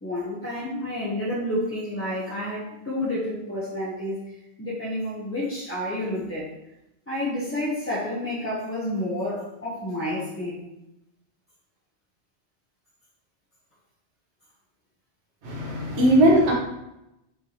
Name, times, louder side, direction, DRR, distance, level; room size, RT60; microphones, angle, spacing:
voice 1, 0.0-4.2 4.6-6.5 7.1-10.6 15.6-15.9, left 1 dB, 15° left, -9 dB, 0.6 m, -30 dB
voice 2, 15.4-16.5, right 1 dB, 65° right, -2 dB, 1.2 m, -19 dB
4.6 x 3.3 x 2.8 m, 0.88 s
omnidirectional pair, 1.2 m